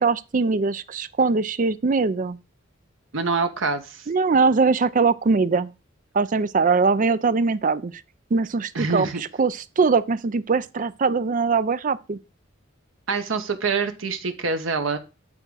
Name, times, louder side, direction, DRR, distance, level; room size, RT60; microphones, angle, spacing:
voice 1, 0.0-2.4 4.1-5.7 6.1-7.9 8.3-9.1 9.4-12.2, right 4 dB, 40° right, 0.5 m, -21 dB
voice 2, 3.1-4.0 8.7-9.2 13.1-15.0, right 4 dB, 80° right, 1.1 m, -25 dB
8.8 x 3.7 x 6.3 m
head